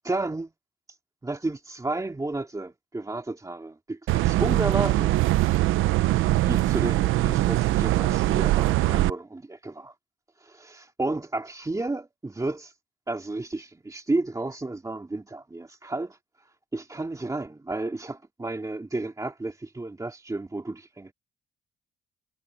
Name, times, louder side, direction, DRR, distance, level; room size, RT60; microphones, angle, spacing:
voice 1, 0.0-0.5 0.9-1.0 1.2-5.1 6.0-9.9 10.4-12.7 13.1-21.1, right 2 dB, 15° right, 2.8 m, -32 dB
sound 1, 4.1-9.1, right 16 dB, 85° right, 0.7 m, -22 dB
cardioid pair, 90°, 20 cm